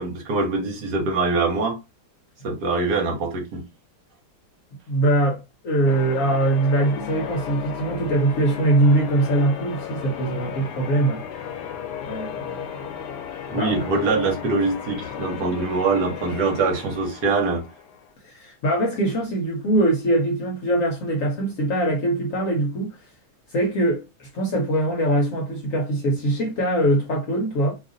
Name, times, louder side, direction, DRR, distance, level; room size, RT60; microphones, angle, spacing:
voice 1, 0.0-1.8 2.4-3.6 13.5-17.6, right 3 dB, 75° right, 1.4 m, -23 dB
voice 2, 4.9-11.2 12.0-12.6 13.5-13.7 18.2-23.0 23.5-27.7, right 1 dB, 60° left, 1.0 m, -22 dB
Church bell, 5.9-18.1, left 8 dB, 90° left, 1.2 m, -35 dB
2.8 x 2.5 x 3.7 m
omnidirectional pair, 1.8 m